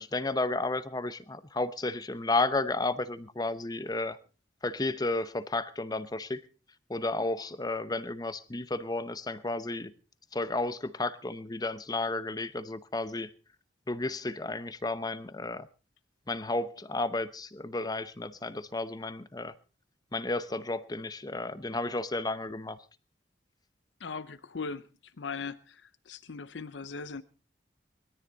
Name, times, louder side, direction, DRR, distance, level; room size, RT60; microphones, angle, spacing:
voice 1, 0.0-4.2 4.6-6.4 6.9-9.9 10.3-13.3 13.9-15.7 16.3-19.5 20.1-22.8, left 2 dB, 20° left, 0.8 m, -32 dB
voice 2, 24.0-24.9 25.2-27.2, left 5 dB, 90° left, 0.7 m, -39 dB
21.0 x 13.5 x 4.0 m
head